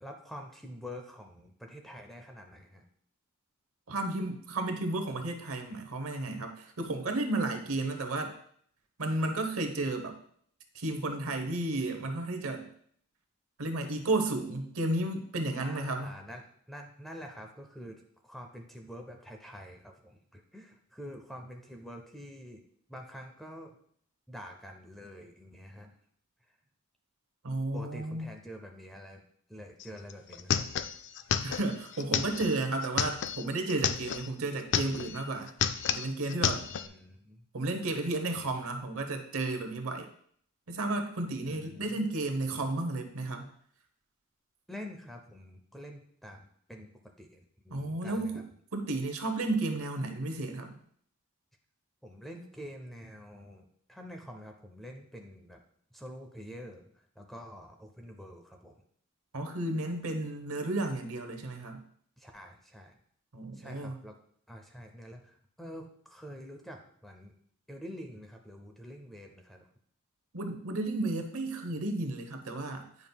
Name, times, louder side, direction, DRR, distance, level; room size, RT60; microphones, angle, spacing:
voice 1, 0.0-2.8 15.6-22.6 22.9-23.8 24.3-26.0 27.7-29.2 29.5-30.7 36.8-37.4 41.5-42.0 44.7-48.4 52.0-55.6 55.9-56.9 57.2-58.7 62.2-63.0 63.5-64.2 64.5-67.3 67.7-69.7, equal, ahead, 3 dB, 0.5 m, -47 dB
voice 2, 3.9-8.3 9.0-10.2 10.7-12.7 13.6-16.2 27.4-28.3 31.4-35.5 35.9-36.6 37.5-40.1 40.7-43.5 47.7-48.4 48.7-50.8 59.3-61.8 63.3-63.9 70.3-72.9, right 2 dB, 70° right, 6 dB, 0.9 m, -33 dB
sound 1, 29.8-29.9 30.1-34.3 34.6-35.2 35.5-36.9, left 8 dB, 55° left, 0.3 m, -31 dB
9.5 x 5.3 x 2.2 m, 0.63 s
head